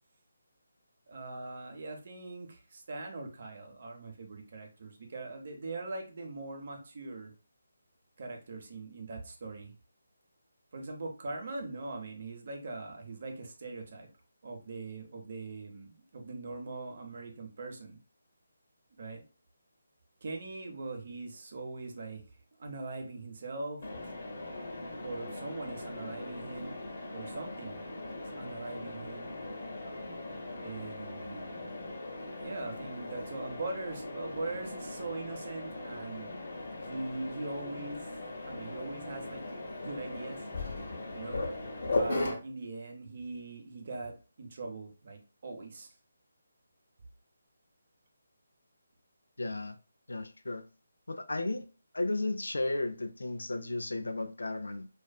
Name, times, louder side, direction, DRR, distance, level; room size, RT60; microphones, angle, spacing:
voice 1, 1.1-7.3 8.2-9.7 10.7-14.1 14.4-18.0 19.0-19.2 20.2-22.2 22.6-23.9 25.0-26.8 27.1-27.8 28.1-29.3 30.5-31.7 32.4-36.3 36.8-38.1 38.5-39.4 39.8-40.4 41.1-41.4 41.8-45.9, right 3 dB, 50° right, 0.6 m, -41 dB
Mechanisms, 23.8-42.3, left 2 dB, 55° left, 0.8 m, -39 dB
voice 2, 49.4-49.8 50.1-50.7 51.1-51.7 51.9-54.9, left 2 dB, 80° left, 0.4 m, -34 dB
2.4 x 2.4 x 2.3 m
figure-of-eight pair, 155°, 0 cm